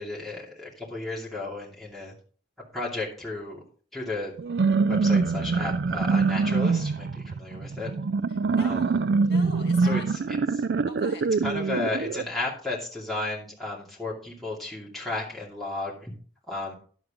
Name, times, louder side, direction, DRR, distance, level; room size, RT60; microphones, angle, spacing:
voice 1, 0.0-2.1 2.7-3.6 3.9-4.3 4.8-7.9 8.5-9.0 9.8-10.0 10.3-10.6 11.4-16.1 16.5-16.7, left 2 dB, ahead, -6 dB, 2.6 m, -34 dB
sound 1, 4.4-12.2, right 4 dB, 65° right, 0.4 m, -24 dB
voice 2, 8.3-10.1 10.9-11.2, left 2 dB, 60° left, 3 dB, 2.2 m, -43 dB
11.0 x 7.9 x 3.7 m, 0.43 s
head